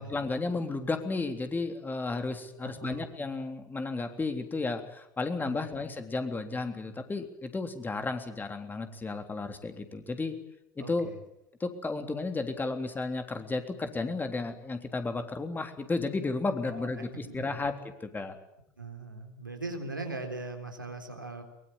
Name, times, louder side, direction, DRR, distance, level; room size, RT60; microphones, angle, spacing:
voice 1, 0.0-10.4 10.8-11.1 11.6-17.7 18.0-18.4, left 3 dB, 20° left, 6 dB, 3.5 m, -33 dB
voice 2, 2.6-3.1 5.5-5.7 10.8-11.2 16.6-17.4 18.8-21.4, right 2 dB, 90° right, 3 dB, 3.7 m, -40 dB
23.5 x 22.5 x 8.9 m, 0.78 s
figure-of-eight pair, 70°, 10 cm